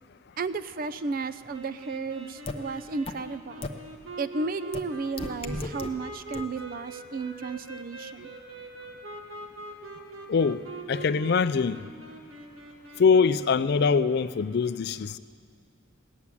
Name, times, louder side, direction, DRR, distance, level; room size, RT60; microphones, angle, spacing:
voice 1, 0.4-3.7 4.2-8.3, right 4 dB, 45° right, 13 dB, 0.5 m, -33 dB
sound 1, 1.5-14.1, right 3 dB, 85° right, 1.6 m, -43 dB
sound 2, 2.5-2.6 3.1-3.2 3.6-3.7 4.7-4.8 5.2-5.9 6.3-6.4, left 2 dB, 30° left, 0.7 m, -33 dB
voice 2, 10.9-11.8 13.0-15.2, left 5 dB, 50° left, 14 dB, 0.4 m, -23 dB
18.0 x 7.2 x 9.6 m, 2.2 s
head